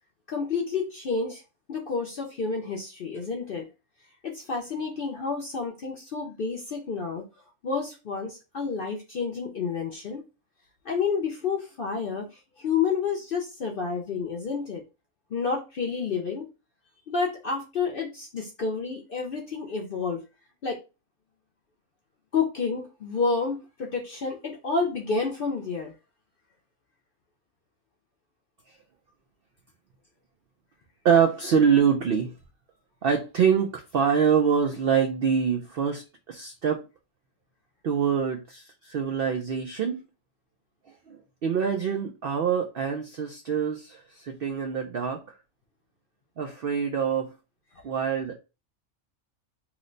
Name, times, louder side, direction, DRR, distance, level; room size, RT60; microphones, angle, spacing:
voice 1, 0.3-1.4 1.7-3.7 4.2-7.2 7.6-10.2 10.8-12.3 12.6-14.8 15.3-16.5 17.1-20.2 20.6-20.8 22.3-25.9, left 5 dB, 60° left, 0.5 m, -29 dB
voice 2, 31.0-32.4 33.0-36.9 37.8-40.0 41.1-45.2 46.4-47.3 47.8-48.4, right 7 dB, 80° right, 0.5 m, -25 dB
3.0 x 2.1 x 3.8 m
omnidirectional pair, 1.5 m